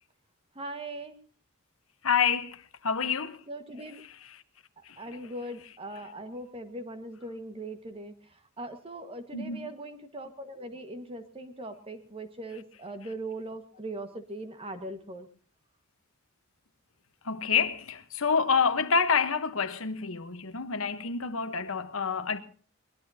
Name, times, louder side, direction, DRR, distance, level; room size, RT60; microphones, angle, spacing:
voice 1, 0.5-1.2 3.5-4.0 4.8-15.3, right 1 dB, 25° right, 1.6 m, -40 dB
voice 2, 2.0-3.4 4.0-4.4 4.8-5.2 9.3-9.7 17.2-22.4, left 6 dB, 70° left, 1.2 m, -28 dB
23.0 x 20.0 x 2.8 m
head